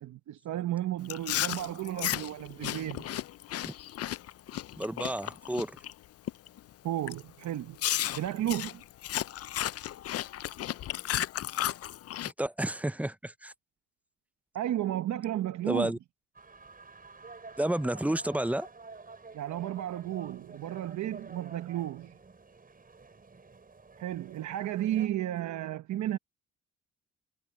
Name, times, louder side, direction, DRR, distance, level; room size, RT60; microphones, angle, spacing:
voice 1, 0.0-3.0 6.8-7.8 8.1-8.8 14.5-15.9 19.3-22.1 24.0-26.2, right 12 dB, 70° right, 1.0 m, -33 dB
Chewing mastication, 1.1-5.9 6.3-6.6 7.1-7.2 7.8-12.3, left 13 dB, 55° left, 0.5 m, -34 dB
voice 2, 4.8-5.8 12.2-13.5 15.7-16.0 17.6-18.7, right 1 dB, 5° right, 0.5 m, -31 dB
sound 1, 16.3-25.1, right 4 dB, 30° right, 6.3 m, -50 dB
cardioid pair, 90°, 30 cm